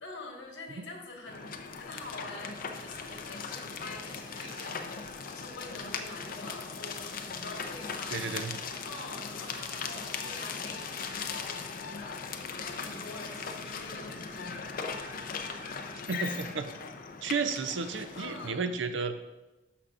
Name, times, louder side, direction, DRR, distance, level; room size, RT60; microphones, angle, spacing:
voice 1, 0.0-1.5 1.8-8.3 8.8-12.2 12.6-14.7 18.1-18.6, left 2 dB, 70° left, 0 dB, 1.7 m, -45 dB
sound 1, 1.3-18.5, left 5 dB, 50° left, 0.6 m, -39 dB
voice 2, 8.1-8.5 16.1-16.7 17.2-19.2, right 5 dB, 75° right, 9 dB, 0.6 m, -33 dB
13.0 x 5.7 x 2.5 m, 1.1 s
head